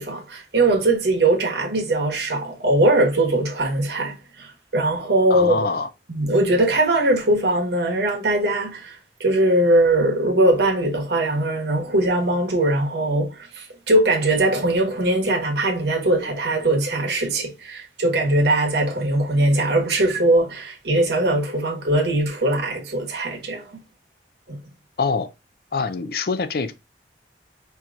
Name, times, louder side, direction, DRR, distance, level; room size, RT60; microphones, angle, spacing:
voice 1, 0.0-5.6 6.1-23.8 24.5-24.6, right 1 dB, 70° right, 1.3 m, -21 dB
voice 2, 5.3-5.9 25.0-25.3 25.7-26.7, left 4 dB, 55° left, 0.5 m, -24 dB
4.7 x 2.9 x 3.6 m
head